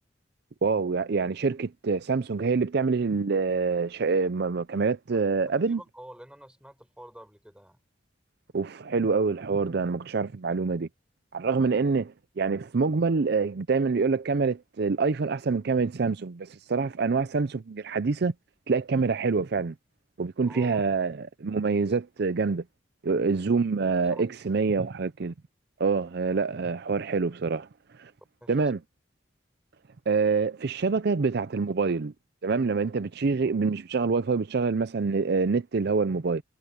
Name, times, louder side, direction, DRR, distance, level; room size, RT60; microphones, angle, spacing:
voice 1, 0.6-5.8 8.5-10.9 11.3-18.3 18.7-19.7 20.2-22.6 23.0-25.3 25.8-27.7 28.0-28.1 28.5-28.8 30.1-32.1 32.4-36.4, right 4 dB, 60° right, 0.5 m, -26 dB
voice 2, 5.6-7.8 20.4-20.9 21.9-22.0 24.1-24.8 28.4-28.7, equal, 5° right, 4.9 m, -48 dB
head